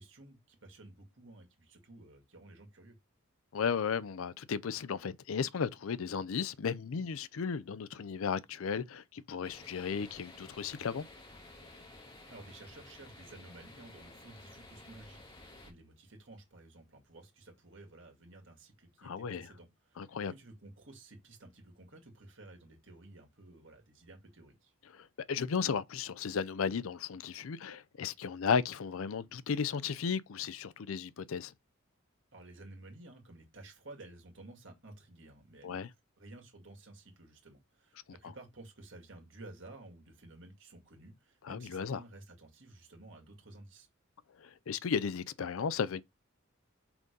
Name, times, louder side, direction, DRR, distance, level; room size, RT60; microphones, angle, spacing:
voice 1, 0.0-3.0 12.3-24.7 32.3-35.8 36.2-43.9, right 2 dB, 60° right, 2.4 m, -53 dB
voice 2, 3.5-11.0 19.0-19.5 20.0-20.3 24.9-31.5 35.6-35.9 41.5-42.0 44.4-46.0, left 6 dB, 75° left, 0.5 m, -35 dB
sound 1, 9.4-15.7, left 2 dB, 25° left, 2.7 m, -53 dB
6.0 x 3.9 x 5.2 m
head